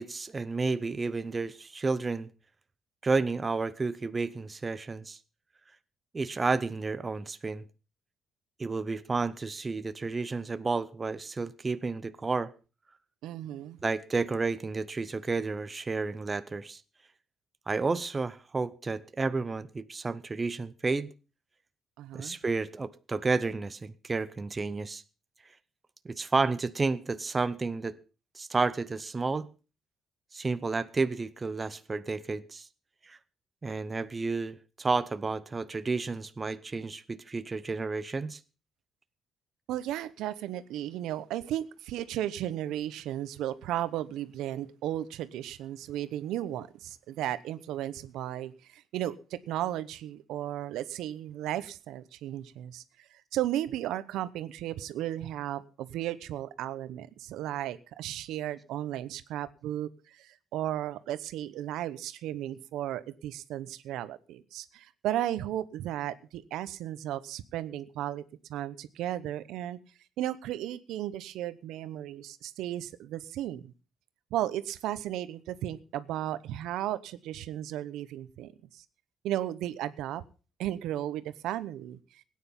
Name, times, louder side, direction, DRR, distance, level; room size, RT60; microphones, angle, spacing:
voice 1, 0.0-2.3 3.0-5.2 6.1-7.6 8.6-12.5 13.8-16.8 17.7-21.1 22.1-25.0 26.0-28.0 28.3-29.5 30.3-32.7 33.0-33.2 33.6-38.4, right 4 dB, 20° right, 0.7 m, -31 dB
voice 2, 13.2-13.8 22.0-22.4 39.7-68.2 68.5-69.8 70.2-73.7 74.3-78.8 79.2-80.2 80.6-82.2, right 12 dB, 90° right, 1.0 m, -35 dB
17.0 x 9.5 x 5.5 m
cardioid pair, 145°, 0 cm